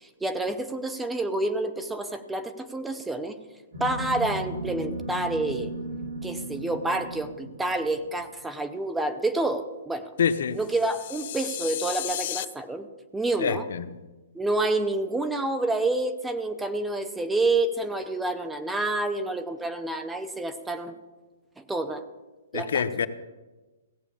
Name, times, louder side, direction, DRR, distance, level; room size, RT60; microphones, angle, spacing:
voice 1, 0.0-3.4 3.8-5.7 6.2-10.1 10.5-12.9 13.1-13.7 14.3-21.0 21.6-22.0 22.5-22.8, right 2 dB, 5° right, 9 dB, 0.7 m, -28 dB
sound 1, 3.7-8.3, right 1 dB, 65° right, 4.7 m, -36 dB
voice 2, 10.2-10.6 13.4-14.0 22.5-23.1, left 7 dB, 70° left, 11 dB, 0.9 m, -26 dB
sound 2, 10.6-12.5, left 13 dB, 45° left, 0.5 m, -34 dB
16.5 x 8.3 x 7.0 m, 1.2 s
hypercardioid pair, 160°, 0 cm